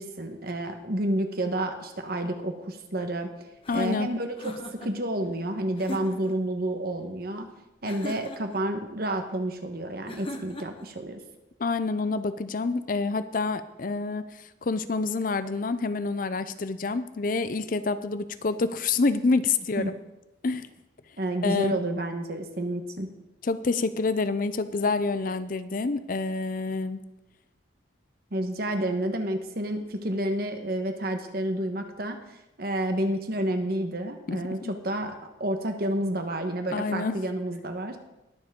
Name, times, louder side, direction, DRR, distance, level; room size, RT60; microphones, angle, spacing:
voice 1, 0.0-3.3 3.7-7.5 7.8-11.2 19.8-19.9 21.2-23.1 28.3-38.0, right 1 dB, 50° right, 6 dB, 1.2 m, -30 dB
sound 1, 3.6-4.9 5.8-6.4 7.8-8.6 10.1-10.9, left 1 dB, 30° left, 1.0 m, -39 dB
voice 2, 3.7-4.1 11.6-14.2 14.6-19.9 20.4-20.7 21.4-21.8 23.4-27.0 34.3-34.7 36.7-37.2, left 3 dB, 45° left, 12 dB, 0.5 m, -27 dB
20.5 x 7.2 x 3.7 m, 0.96 s
head